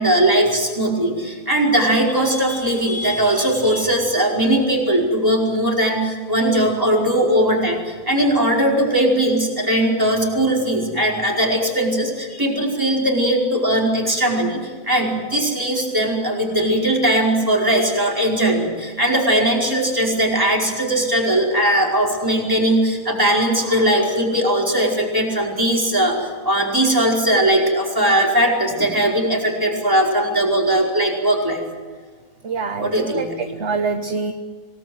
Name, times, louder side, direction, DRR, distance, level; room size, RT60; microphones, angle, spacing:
voice 1, 0.0-31.6 32.8-33.6, right 1 dB, 15° right, -2 dB, 4.9 m, -19 dB
voice 2, 32.4-34.3, right 4 dB, 50° right, 7 dB, 1.3 m, -25 dB
26.5 x 19.0 x 8.0 m, 1.4 s
omnidirectional pair, 1.6 m